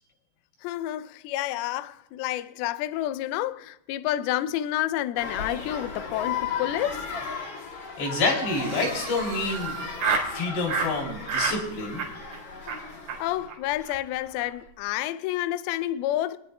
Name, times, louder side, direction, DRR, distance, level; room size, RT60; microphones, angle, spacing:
voice 1, 0.6-7.0 13.2-16.4, left 13 dB, 90° left, 2.2 m, -29 dB
sound 1, 5.2-13.5, left 6 dB, 50° left, 1.9 m, -36 dB
voice 2, 8.0-9.7 10.3-12.0, left 3 dB, 75° left, 4.9 m, -28 dB
Laughter, 8.5-10.3 10.7-10.9 11.3-11.6 11.9-12.4 12.7-12.8 13.1-13.2 13.5-13.6 13.8-14.0 14.2-14.6, right 5 dB, 65° right, 3.4 m, -30 dB
28.5 x 9.7 x 2.2 m
omnidirectional pair, 5.0 m